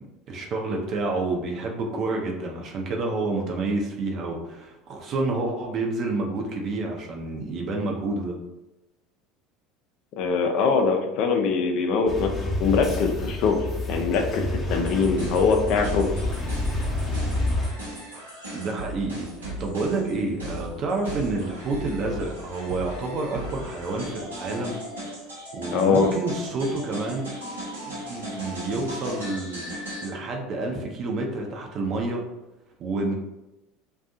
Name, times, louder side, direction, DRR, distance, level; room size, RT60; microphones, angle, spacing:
voice 1, 0.3-8.4 18.5-24.8 25.5-27.3 27.9-32.2 32.8-33.1, right 2 dB, 45° right, 1 dB, 0.5 m, -29 dB
voice 2, 10.2-16.2 25.7-26.1, left 5 dB, 55° left, 4 dB, 0.4 m, -23 dB
sound 1, 12.1-17.7, left 1 dB, 15° left, 0.6 m, -28 dB
sound 2, 14.8-30.1, right 1 dB, 85° right, 0.8 m, -37 dB
2.5 x 2.3 x 2.5 m, 0.96 s
figure-of-eight pair, 70°, 0 cm